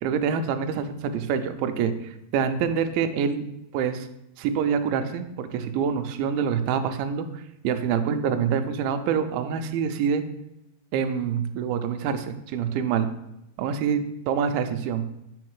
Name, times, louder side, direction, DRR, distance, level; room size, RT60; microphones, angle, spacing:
voice 1, 0.0-3.5 3.7-4.1 4.4-10.2 10.9-13.1 13.6-15.1, right 7 dB, 85° right, 8 dB, 2.4 m, -26 dB
6.5 x 3.9 x 4.6 m, 0.85 s
omnidirectional pair, 4.3 m